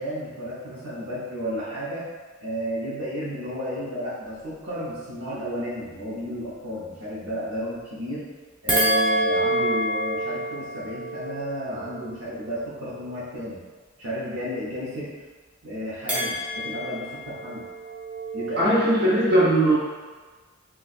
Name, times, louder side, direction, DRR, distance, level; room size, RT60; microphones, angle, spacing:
voice 1, 0.0-2.1 2.4-8.3 8.6-13.6 14.0-15.1 15.6-17.6 18.3-18.8, left 1 dB, 75° right, -9 dB, 0.8 m, -32 dB
sound 1, 8.7-13.2 16.1-18.6, right 1 dB, 5° right, 0.6 m, -28 dB
voice 2, 18.6-19.7, right 1 dB, 50° right, -8 dB, 1.0 m, -19 dB
4.0 x 2.3 x 2.5 m, 1.4 s
head